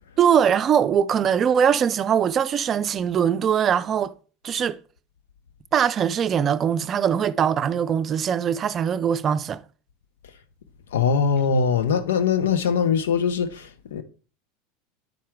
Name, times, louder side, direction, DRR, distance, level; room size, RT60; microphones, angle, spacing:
voice 1, 0.2-4.1 4.4-4.8 5.7-9.6, right 8 dB, 35° right, 0.4 m, -21 dB
voice 2, 10.9-14.0, left 6 dB, 80° left, 0.7 m, -22 dB
9.4 x 4.3 x 3.6 m
hypercardioid pair, 90°, 0 cm